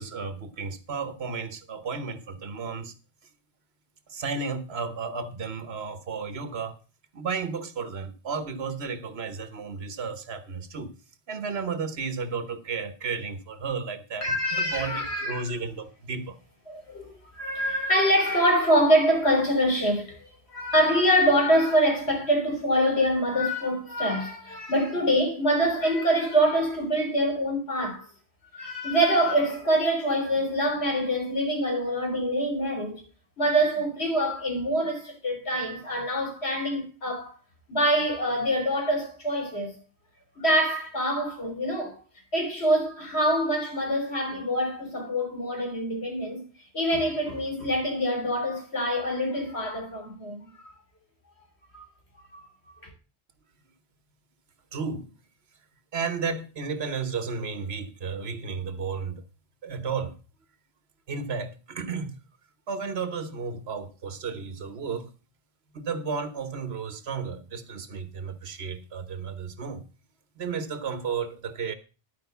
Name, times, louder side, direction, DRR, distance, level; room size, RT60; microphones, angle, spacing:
voice 1, 0.0-2.9 4.1-6.8 7.1-10.9 11.3-14.3 14.5-16.4 54.7-55.1 55.9-59.2 59.6-60.1 61.1-62.1 62.7-65.1 65.7-69.8 70.4-71.7, right 5 dB, 80° right, 1.4 m, -33 dB
voice 2, 14.2-15.5 16.7-28.1 28.5-33.0 33.4-37.4 37.7-39.7 40.4-42.0 42.3-46.4 46.7-50.5 51.7-51.8 52.3-52.4, equal, 90° left, 4.1 m, -25 dB
11.5 x 5.1 x 6.8 m
omnidirectional pair, 1.1 m